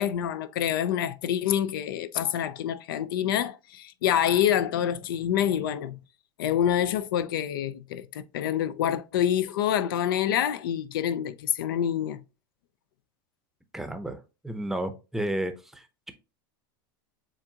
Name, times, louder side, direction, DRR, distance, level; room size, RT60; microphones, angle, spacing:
voice 1, 0.0-6.0 6.4-12.2, left 10 dB, 80° left, 0.5 m, -27 dB
voice 2, 13.7-14.2 14.4-16.1, right 1 dB, 5° right, 0.6 m, -32 dB
7.2 x 2.5 x 2.7 m
supercardioid pair, 120°, 11 cm